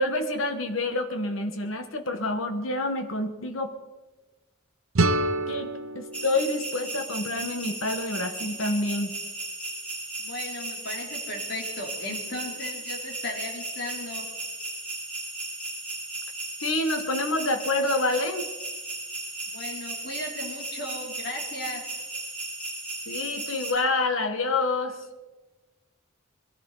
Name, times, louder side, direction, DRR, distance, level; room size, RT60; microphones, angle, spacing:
voice 1, 0.0-3.7 5.5-5.7 5.9-9.2 16.6-18.5 23.1-25.0, left 2 dB, 75° left, 6 dB, 1.5 m, -27 dB
sound 1, 4.9-7.8, right 2 dB, 85° right, 0.8 m, -29 dB
sound 2, 6.1-23.7, right 2 dB, 5° left, 4.2 m, -36 dB
voice 2, 10.2-14.2 19.5-21.8, left 1 dB, 50° left, 0 dB, 3.5 m, -36 dB
21.5 x 16.0 x 4.1 m, 1.2 s
head